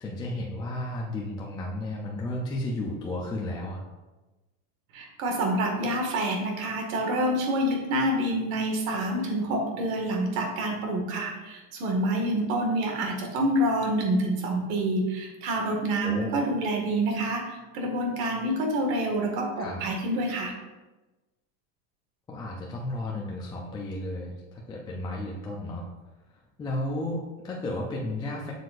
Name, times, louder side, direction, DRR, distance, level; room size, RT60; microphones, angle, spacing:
voice 1, 0.0-3.8 16.0-16.4 19.6-19.8 22.3-25.9 26.6-28.5, left 1 dB, 10° left, -2 dB, 0.4 m, -33 dB
voice 2, 4.9-20.5, right 1 dB, 75° right, 1 dB, 1.9 m, -27 dB
7.9 x 6.6 x 2.5 m, 1.1 s
supercardioid pair, 160°, 40 cm